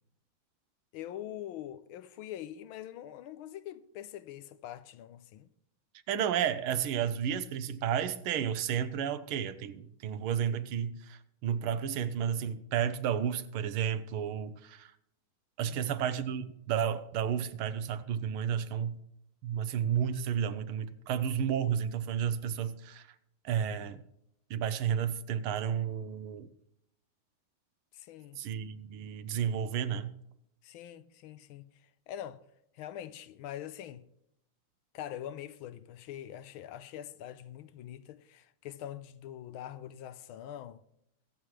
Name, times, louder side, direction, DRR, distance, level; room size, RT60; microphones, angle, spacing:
voice 1, 0.9-5.5 15.6-16.0 27.9-28.4 30.6-31.6 32.1-32.4 32.7-34.1 34.9-40.8, left 11 dB, 85° left, 1.5 m, -44 dB
voice 2, 6.1-14.9 15.6-19.0 19.4-23.1 23.4-24.0 24.5-26.5 28.4-30.1, right 8 dB, 85° right, 1.7 m, -32 dB
22.5 x 7.7 x 3.2 m
omnidirectional pair, 2.3 m